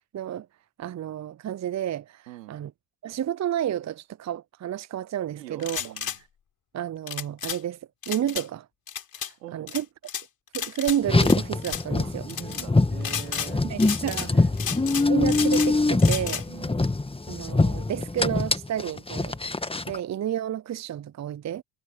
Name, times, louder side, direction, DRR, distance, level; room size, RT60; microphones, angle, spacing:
voice 1, 0.1-0.5 0.8-2.7 3.0-5.9 6.7-7.8 8.1-8.7 9.2-9.9 10.5-12.3 13.6-14.3 15.1-16.4 17.3-19.4 19.9-21.6, right 10 dB, 35° right, 0.8 m, -31 dB
voice 2, 2.3-2.6 5.3-6.2 9.4-9.8 12.0-15.0 16.5-16.8, right 16 dB, 85° right, 4.0 m, -45 dB
sound 1, 5.6-6.2 7.1-7.6 8.0-8.4 8.9-9.3 9.7-10.2 10.5-11.4 11.6-11.8 12.3-12.6 13.0-13.5 13.8-14.3 14.6-15.7 16.0-16.4, left 8 dB, 45° left, 5.6 m, -32 dB
Car, 11.0-20.0, left 3 dB, 10° left, 1.7 m, -24 dB
hypercardioid pair, 55°, 47 cm